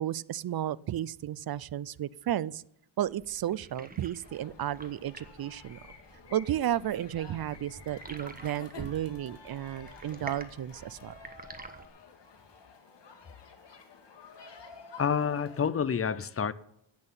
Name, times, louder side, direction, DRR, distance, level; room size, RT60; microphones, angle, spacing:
voice 1, 0.0-2.6 3.0-5.8 6.3-11.1, right 11 dB, 50° right, 0.5 m, -33 dB
sound 1, 3.1-11.9, right 3 dB, 20° right, 1.3 m, -48 dB
sound 2, 4.2-15.7, left 5 dB, 60° left, 2.1 m, -51 dB
voice 2, 15.0-16.5, left 7 dB, 30° left, 0.6 m, -28 dB
10.5 x 8.9 x 8.8 m
wide cardioid pair, 130°, 47 cm